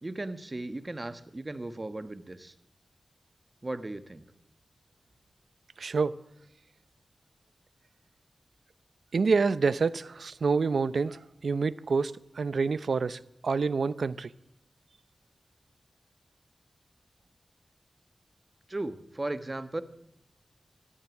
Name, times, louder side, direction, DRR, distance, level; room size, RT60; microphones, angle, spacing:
voice 1, 0.0-2.5 3.6-4.3 18.7-19.8, right 2 dB, 30° right, 1.3 m, -36 dB
voice 2, 5.8-6.2 9.1-14.3, right 4 dB, 75° right, 0.6 m, -27 dB
14.5 x 12.5 x 7.2 m
wide cardioid pair, 60°, 0 cm